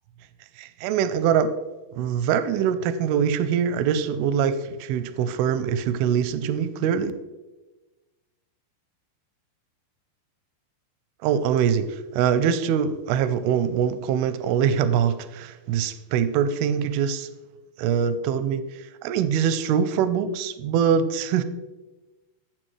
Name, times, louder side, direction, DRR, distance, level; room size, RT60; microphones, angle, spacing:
voice 1, 0.6-1.5 2.0-7.1 11.2-17.3 17.8-21.4, right 8 dB, 85° right, 12 dB, 2.4 m, -23 dB
12.0 x 7.7 x 3.2 m, 1.1 s
omnidirectional pair, 4.7 m